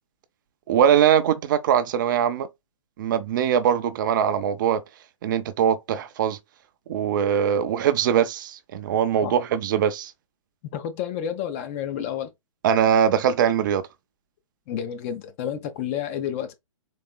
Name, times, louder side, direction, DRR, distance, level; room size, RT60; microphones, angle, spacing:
voice 1, 0.7-2.5 3.0-4.8 5.2-6.4 6.9-10.1 12.6-13.8, right 9 dB, 35° right, 0.4 m, -21 dB
voice 2, 10.7-12.3 14.7-16.5, left 9 dB, 25° left, 0.4 m, -30 dB
3.9 x 2.9 x 2.2 m
figure-of-eight pair, 130°, 18 cm